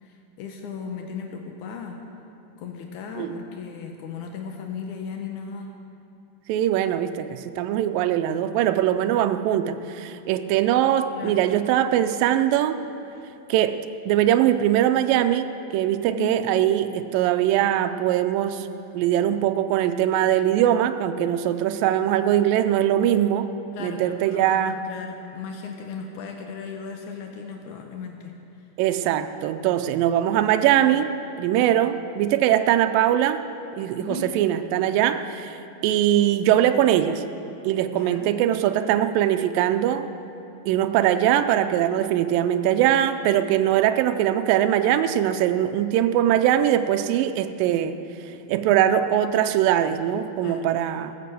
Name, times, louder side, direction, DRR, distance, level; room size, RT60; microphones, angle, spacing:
voice 1, 0.0-2.0 2.6-5.7 11.2-11.4 16.2-16.4 23.7-28.3 34.0-34.3 37.9-38.4 50.4-51.0, left 6 dB, 90° left, 3 dB, 1.7 m, -36 dB
voice 2, 6.5-12.8 13.5-13.8 14.1-18.7 18.9-23.5 23.8-24.8 28.8-31.1 31.4-33.4 33.8-35.6 35.8-37.2 37.6-40.1 40.7-48.0 48.5-51.2, right 11 dB, 85° right, 9 dB, 2.0 m, -21 dB
14.5 x 7.5 x 7.5 m, 2.9 s
omnidirectional pair, 4.5 m